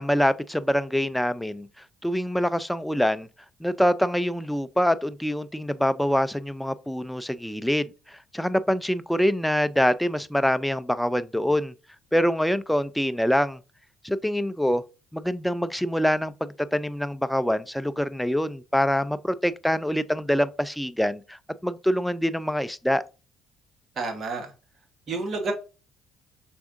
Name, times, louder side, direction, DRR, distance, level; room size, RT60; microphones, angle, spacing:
voice 1, 0.0-1.7 2.0-3.3 3.6-11.7 12.1-13.6 14.0-14.8 15.1-23.0, equal, 5° left, 0.4 m, -25 dB
voice 2, 24.0-24.5 25.1-25.5, right 3 dB, 45° right, 1.2 m, -29 dB
6.1 x 3.5 x 2.5 m
hypercardioid pair, 55°, 0 cm